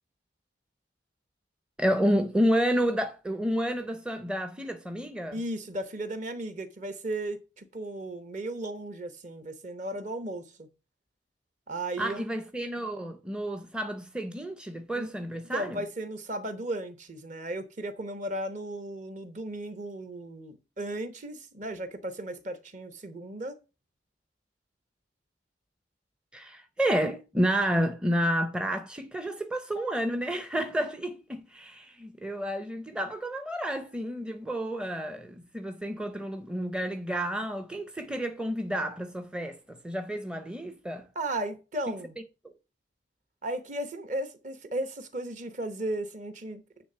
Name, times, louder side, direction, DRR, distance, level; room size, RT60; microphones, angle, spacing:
voice 1, 1.8-5.4 12.0-15.8 26.3-41.1 42.4-42.5, equal, 5° right, 0.6 m, -30 dB
voice 2, 5.3-10.7 11.7-12.3 14.9-23.6 41.1-42.2 43.4-46.6, right 1 dB, 40° right, 1.0 m, -35 dB
9.5 x 3.4 x 6.7 m
head